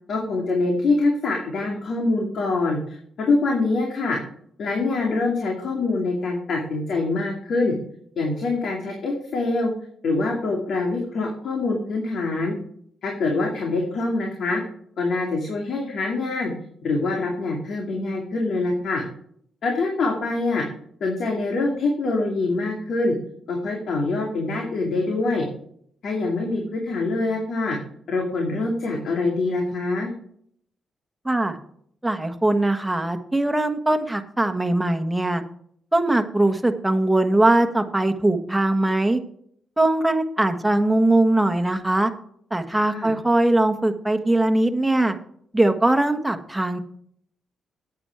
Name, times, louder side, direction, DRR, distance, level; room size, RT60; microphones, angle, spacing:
voice 1, 0.1-4.2 4.6-7.7 8.2-9.7 10.0-12.5 13.0-14.6 15.0-16.5 16.8-19.0 19.6-20.6 21.0-23.1 23.5-25.5 26.0-27.8 28.1-30.1 42.9-43.1, left 3 dB, 70° left, 0 dB, 2.4 m, -24 dB
voice 2, 31.2-31.6 32.0-35.4 35.9-39.2 39.8-42.1 42.5-45.1 45.5-46.8, right 2 dB, 10° right, 6 dB, 1.4 m, -21 dB
9.3 x 8.8 x 4.8 m, 0.63 s
cardioid pair, 70°, 0 cm